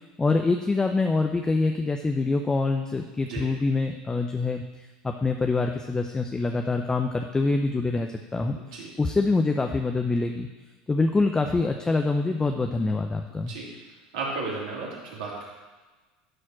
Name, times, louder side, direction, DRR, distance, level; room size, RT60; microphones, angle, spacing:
voice 1, 0.2-4.6 5.0-8.6 9.0-10.5 10.9-13.5, left 3 dB, 15° left, 4 dB, 0.7 m, -25 dB
voice 2, 8.5-8.9 13.5-13.7 14.1-15.6, right 3 dB, 75° right, -4 dB, 3.1 m, -34 dB
11.5 x 4.3 x 6.2 m, 1.3 s
hypercardioid pair, 95°, 4 cm